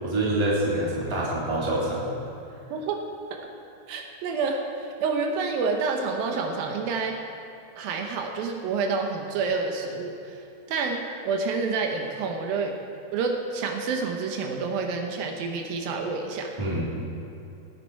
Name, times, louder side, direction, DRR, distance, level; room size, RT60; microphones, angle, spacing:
voice 1, 0.0-2.0 16.6-16.9, right 1 dB, 10° right, -6 dB, 2.3 m, -26 dB
voice 2, 2.7-3.0 3.3-3.4 3.9-7.2 7.8-12.8 13.1-16.5, right 4 dB, 80° right, 2 dB, 2.8 m, -28 dB
17.5 x 9.7 x 4.6 m, 2.8 s
omnidirectional pair, 4.2 m